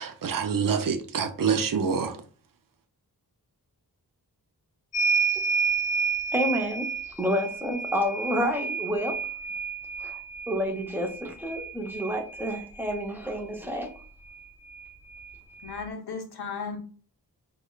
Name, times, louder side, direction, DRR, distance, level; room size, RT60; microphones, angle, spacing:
voice 1, 0.0-2.2, right 6 dB, 60° right, 0.5 m, -26 dB
sound 1, 4.9-13.1 14.3-14.4 14.7-15.8, right 5 dB, 45° left, 0.5 m, -30 dB
voice 2, 6.3-6.9 7.2-9.2 10.0-10.2 10.5-13.9, equal, 5° right, 0.6 m, -29 dB
voice 3, 15.6-16.8, left 5 dB, 80° left, 0.8 m, -35 dB
4.7 x 2.3 x 2.3 m
wide cardioid pair, 75°, 38 cm